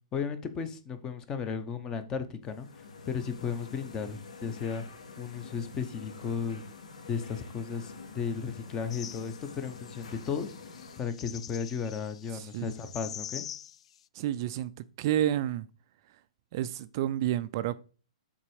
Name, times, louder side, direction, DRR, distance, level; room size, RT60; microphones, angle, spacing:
voice 1, 0.1-4.8 5.2-6.6 7.1-10.5 11.0-13.4, left 6 dB, 15° left, 0.7 m, -35 dB
sound 1, 2.4-11.0, left 4 dB, 90° left, 2.1 m, -47 dB
sound 2, 8.9-14.0, left 10 dB, 65° left, 0.3 m, -45 dB
voice 2, 12.3-12.6 14.1-15.7 16.5-17.8, right 12 dB, 40° right, 0.3 m, -30 dB
7.3 x 4.2 x 4.8 m
hypercardioid pair, 160°, 4 cm